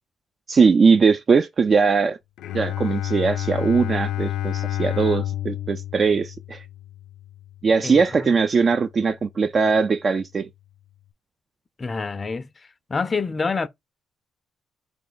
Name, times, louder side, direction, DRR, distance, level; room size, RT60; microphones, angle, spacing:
voice 1, 0.5-2.2 2.5-6.6 7.6-10.5, right 5 dB, 45° right, 0.4 m, -20 dB
Bowed string instrument, 2.4-8.1, left 13 dB, 85° left, 0.5 m, -30 dB
voice 2, 7.8-8.3 11.8-12.5 12.9-13.7, left 4 dB, 30° left, 0.4 m, -27 dB
3.8 x 3.3 x 3.8 m
cardioid pair, 90°, 0 cm